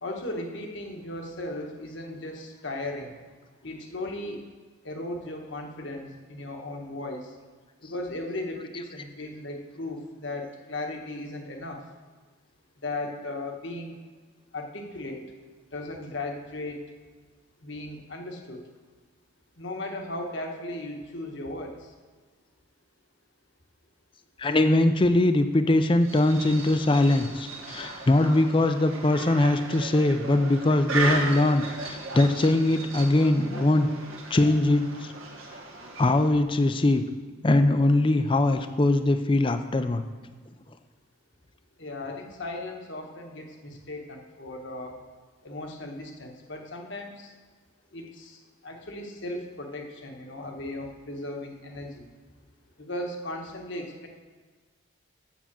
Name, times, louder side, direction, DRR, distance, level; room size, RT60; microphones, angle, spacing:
voice 1, 0.0-3.2 3.6-4.4 4.8-7.3 7.8-11.8 12.8-14.0 14.5-15.2 15.7-16.9 17.6-18.6 19.6-21.9 41.8-45.0 45.4-47.3 47.9-52.1 52.8-54.1, left 2 dB, 60° left, 2 dB, 1.3 m, -36 dB
voice 2, 24.4-33.9 34.3-35.1 36.0-37.0 37.4-40.0, left 2 dB, 25° left, 8 dB, 0.4 m, -22 dB
sound 1, 26.0-36.4, right 3 dB, 80° right, 1.4 m, -36 dB
7.3 x 6.9 x 7.4 m, 1.4 s
head